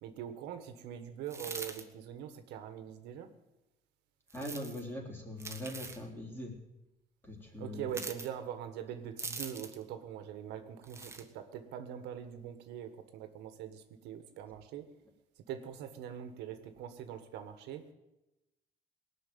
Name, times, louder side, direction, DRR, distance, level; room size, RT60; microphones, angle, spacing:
voice 1, 0.0-3.3 7.6-14.9 15.4-17.8, right 9 dB, 90° right, 8 dB, 1.4 m, -43 dB
sound 1, 1.3-1.8 4.3-4.8 5.4-6.0 7.9-8.3 9.2-9.8 10.8-11.2, right 3 dB, 15° right, 1.5 m, -42 dB
voice 2, 4.3-6.5 7.2-8.0, left 1 dB, 10° left, 0 dB, 3.7 m, -42 dB
18.5 x 6.3 x 9.3 m, 0.97 s
cardioid pair, 110°, 17 cm